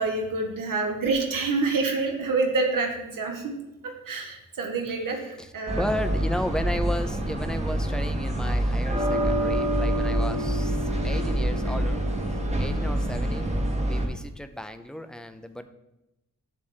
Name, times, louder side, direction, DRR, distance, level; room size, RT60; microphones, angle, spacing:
voice 1, 0.0-3.5 4.1-5.8, right 3 dB, 80° right, 2 dB, 1.0 m, -27 dB
voice 2, 5.4-12.2 12.6-13.5 13.9-15.6, equal, ahead, 9 dB, 0.3 m, -34 dB
sound 1, 5.7-14.1, right 1 dB, 20° right, 0.8 m, -26 dB
7.2 x 3.3 x 6.1 m, 0.92 s
wide cardioid pair, 150°, 33 cm